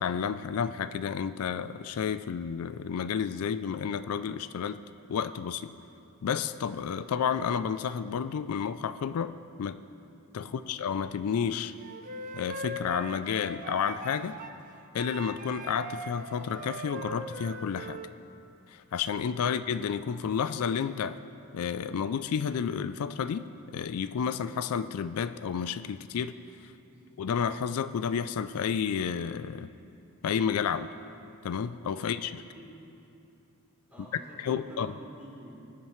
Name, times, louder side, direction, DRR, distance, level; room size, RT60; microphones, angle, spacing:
voice 1, 0.0-4.8 5.1-5.7 6.2-9.8 10.3-11.7 12.3-14.4 14.9-18.0 18.7-21.2 21.5-26.3 27.2-29.7 30.2-30.9 31.4-32.4 34.4-34.9, left 7 dB, 80° left, 12 dB, 0.4 m, -31 dB
voice 2, 10.4-10.7 26.7-27.1 31.9-32.8 33.9-35.5, right 1 dB, 5° right, -7 dB, 3.1 m, -50 dB
Wind instrument woodwind instrument, 11.8-14.6 15.0-18.1, right 1 dB, 35° right, 0.6 m, -40 dB
20.5 x 10.5 x 3.1 m, 2.8 s
head